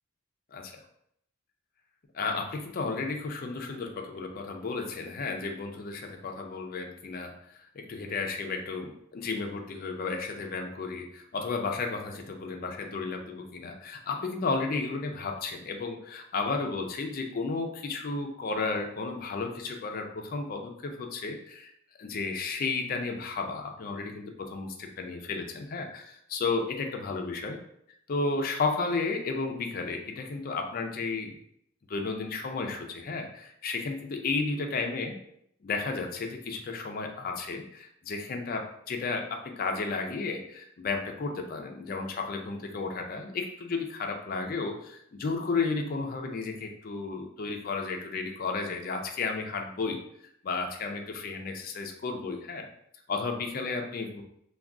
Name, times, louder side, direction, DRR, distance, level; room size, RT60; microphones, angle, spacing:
voice 1, 2.1-21.7 22.0-27.6 28.1-31.4 31.9-35.2 35.6-50.0 50.4-52.7 53.1-54.2, left 4 dB, 45° left, 3 dB, 0.4 m, -33 dB
2.3 x 2.3 x 3.6 m, 0.72 s
head